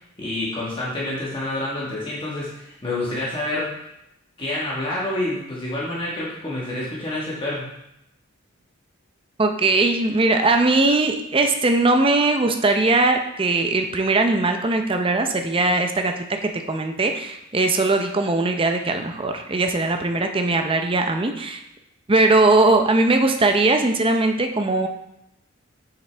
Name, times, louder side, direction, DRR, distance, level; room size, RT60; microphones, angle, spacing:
voice 1, 0.0-3.8 4.4-7.7, left 1 dB, 25° left, -6 dB, 1.4 m, -28 dB
voice 2, 9.4-16.1 16.4-21.6 22.1-24.9, right 2 dB, 25° right, 5 dB, 0.6 m, -20 dB
7.2 x 5.9 x 3.4 m, 0.82 s
head